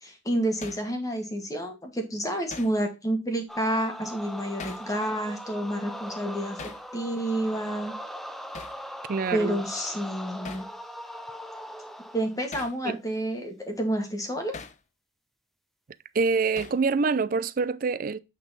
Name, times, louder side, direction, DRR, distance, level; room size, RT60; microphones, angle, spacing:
voice 1, 0.0-6.6 6.9-7.9 9.3-10.6 12.1-14.6, right 1 dB, 20° left, 1.5 m, -29 dB
Hammer, 0.6-0.9 2.5-2.8 4.6-4.9 6.6-6.9 8.5-8.8 10.5-10.7 12.5-12.8 14.5-14.8 16.6-16.9, left 4 dB, 40° left, 0.6 m, -41 dB
sound 1, 3.5-12.4, equal, ahead, 0.6 m, -40 dB
voice 2, 9.1-9.6 12.8-13.0 16.1-18.2, right 4 dB, 50° right, 0.4 m, -25 dB
8.4 x 3.8 x 4.1 m
head